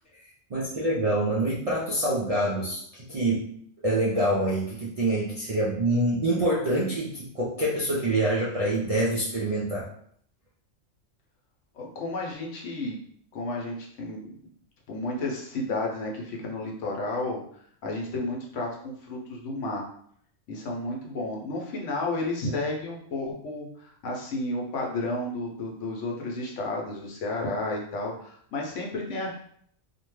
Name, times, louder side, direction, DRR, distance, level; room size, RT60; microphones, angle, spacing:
voice 1, 0.5-3.5 3.8-9.9, right 1 dB, 55° right, -5 dB, 0.4 m, -26 dB
voice 2, 11.7-13.0 13.3-14.4 14.9-17.4 17.8-19.8 20.5-29.4, left 2 dB, 80° left, -1 dB, 1.0 m, -32 dB
2.7 x 2.2 x 3.0 m, 0.65 s
omnidirectional pair, 1.2 m